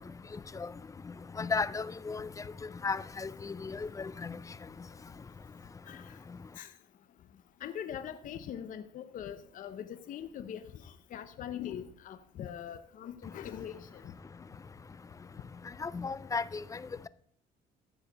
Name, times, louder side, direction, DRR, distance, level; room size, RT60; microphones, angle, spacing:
voice 1, 1.4-2.3 2.8-3.7 4.0-4.1 15.8-16.6, left 4 dB, 20° left, 0.4 m, -34 dB
voice 2, 5.9-6.2 6.6-6.7 7.6-14.1, left 9 dB, 50° left, 0.7 m, -42 dB
14.0 x 4.8 x 5.3 m
cardioid pair, 110°, 17 cm